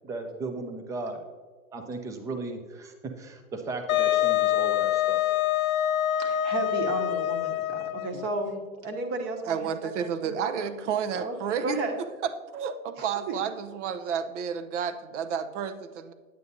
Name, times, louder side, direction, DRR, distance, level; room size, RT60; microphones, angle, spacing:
voice 1, 0.0-1.2 1.7-5.2, right 3 dB, 10° right, 6 dB, 0.4 m, -36 dB
Wind instrument woodwind instrument, 3.9-8.2, left 13 dB, 80° left, 0.5 m, -25 dB
voice 2, 6.2-8.6 8.8-10.7 11.1-11.3 11.6-12.0 13.0-13.1, right 3 dB, 35° right, 4 dB, 1.3 m, -33 dB
voice 3, 9.4-11.8 12.2-16.1, right 7 dB, 60° right, 10 dB, 0.8 m, -31 dB
9.1 x 8.6 x 2.6 m, 1.4 s
hypercardioid pair, 120°, 41 cm